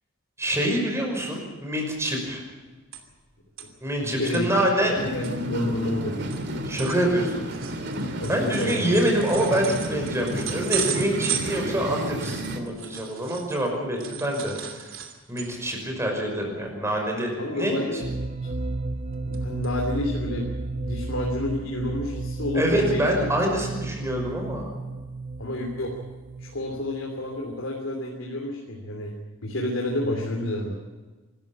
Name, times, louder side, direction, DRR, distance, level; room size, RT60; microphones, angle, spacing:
voice 1, 0.4-2.4 3.8-5.0 6.6-7.3 8.3-14.6 15.3-17.8 22.5-24.7, right 1 dB, 15° right, 1 dB, 5.7 m, -25 dB
sound 1, 2.5-3.3 3.6-3.7 4.1-4.4 4.9-5.0 5.2-13.7 14.0-15.7 16.1-16.3 16.6-16.9 17.9-18.5 18.9-19.4 19.6-19.7 20.4-20.5, right 9 dB, 90° right, 2.9 m, -36 dB
voice 2, 4.0-4.6 4.9-6.4 8.2-8.9 17.4-18.1 18.4-18.5 19.2-20.5 20.8-23.0 25.4-25.9 26.4-29.1 29.4-30.8, left 1 dB, 80° left, 1 dB, 3.1 m, -29 dB
sound 2, 4.9-12.6, right 1 dB, 60° right, 2.3 m, -32 dB
sound 3, 18.0-27.6, right 2 dB, 35° right, 0.8 m, -33 dB
25.0 x 14.0 x 8.8 m, 1.3 s
head